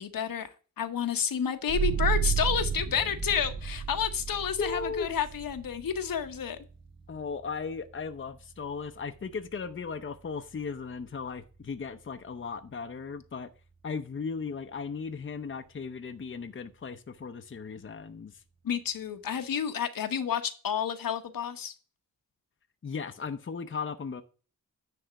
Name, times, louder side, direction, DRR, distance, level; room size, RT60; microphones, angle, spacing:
voice 1, 0.0-6.6 18.6-21.7, left 8 dB, 75° left, 1.1 m, -30 dB
sound 1, 1.7-12.9, right 7 dB, 60° right, 2.0 m, -35 dB
voice 2, 4.6-5.1 7.1-13.5 13.8-18.3 22.8-24.2, left 5 dB, 35° left, 0.7 m, -36 dB
10.0 x 3.5 x 6.9 m
wide cardioid pair, 105°, 34 cm